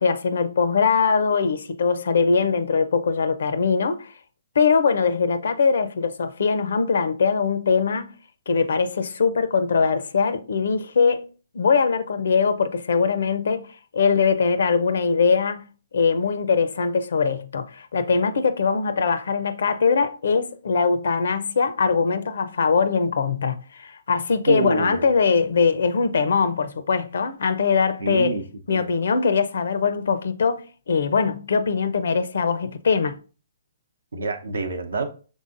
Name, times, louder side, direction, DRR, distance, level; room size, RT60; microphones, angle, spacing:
voice 1, 0.0-4.1 4.6-8.1 8.5-11.3 11.5-13.7 13.9-15.7 15.9-28.4 28.7-33.2, left 5 dB, 70° left, 0.5 m, -21 dB
voice 2, 24.5-25.1 28.0-28.4 28.7-28.8 34.1-35.1, right 4 dB, 85° right, 0.7 m, -26 dB
5.5 x 3.5 x 2.5 m
hypercardioid pair, 140°, 0 cm